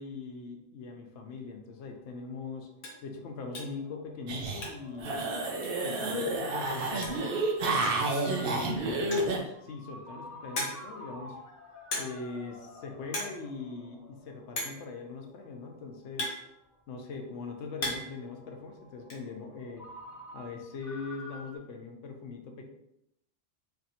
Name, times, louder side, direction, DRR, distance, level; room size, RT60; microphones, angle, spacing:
voice 1, 0.0-2.7 3.0-5.2 5.8-7.6 8.1-11.4 11.9-16.4 16.9-19.9 20.3-22.6, left 4 dB, 75° left, 3 dB, 0.9 m, -41 dB
Ringtone, 1.8-21.6, left 1 dB, 20° left, 0.8 m, -50 dB
sound 1, 2.0-2.1 2.4-2.5 2.8-3.1 3.5-3.8 4.2-5.0 5.3-5.4 5.6-5.7 6.7-6.8 7.0-7.3 7.8-8.1 8.9-9.4 10.0-10.1 10.6-11.0 11.9-12.3 12.6-12.8 13.1-13.4 13.7-13.8 14.6-14.9 15.7-17.0 17.4-18.2 18.5-19.2, left 1 dB, 50° left, 1.0 m, -37 dB
sound 2, 4.3-4.7 5.0-9.4, right 2 dB, 60° right, 0.8 m, -30 dB
3.3 x 2.5 x 4.1 m, 0.79 s
omnidirectional pair, 1.2 m